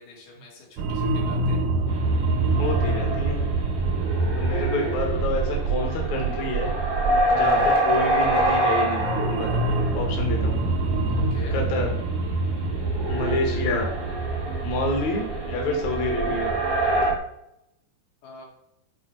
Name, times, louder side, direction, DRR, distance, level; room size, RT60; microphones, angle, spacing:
voice 1, 0.0-1.6 3.7-4.2 11.1-11.6 13.2-13.7 18.2-18.4, left 2 dB, 80° left, -2 dB, 4.1 m, -44 dB
sound 1, 0.8-17.2, right 3 dB, 75° right, 2.1 m, -26 dB
sound 2, 1.9-2.0 2.4-10.5 12.7-17.1, right 1 dB, 35° right, 0.4 m, -26 dB
voice 2, 2.6-3.4 4.4-6.7 7.3-9.7 9.9-10.6 11.5-11.9 13.1-13.9 14.6-16.5, left 2 dB, 55° left, 1 dB, 2.6 m, -28 dB
9.3 x 5.0 x 4.6 m, 0.81 s
omnidirectional pair, 4.3 m